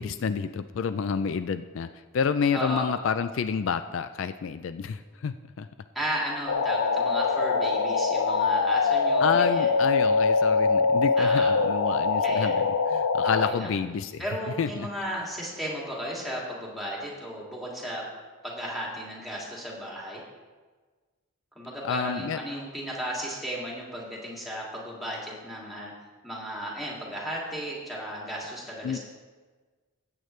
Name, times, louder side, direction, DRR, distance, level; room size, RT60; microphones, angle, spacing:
voice 1, 0.0-5.7 9.2-14.2 14.6-14.9 21.8-22.4 28.8-29.0, left 6 dB, 60° left, 11 dB, 0.3 m, -29 dB
voice 2, 2.5-2.9 5.9-9.7 11.2-11.5 12.2-12.6 13.2-13.7 14.2-18.0 18.4-20.2 21.6-25.9 26.2-29.0, equal, ahead, -4 dB, 2.4 m, -35 dB
sound 1, 6.5-13.5, left 4 dB, 85° left, 0.7 m, -23 dB
15.5 x 8.1 x 3.2 m, 1.4 s
head